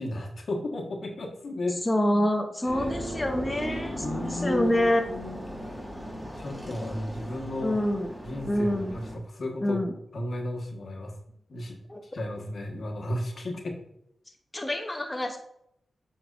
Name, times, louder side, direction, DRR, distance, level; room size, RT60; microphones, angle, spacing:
voice 1, 0.0-1.8 2.6-2.9 4.0-5.8 6.4-7.8 8.2-9.8 10.1-11.1 11.5-13.8, left 1 dB, 65° left, 1 dB, 1.3 m, -34 dB
voice 2, 1.9-5.1 7.6-8.1 8.5-9.0 9.6-9.9 11.9-12.0 14.5-15.4, left 1 dB, 20° left, 3 dB, 0.8 m, -26 dB
sound 1, 2.7-9.2, right 1 dB, 5° right, 1.6 m, -37 dB
8.4 x 5.2 x 2.5 m, 0.75 s
cardioid pair, 55°, 0 cm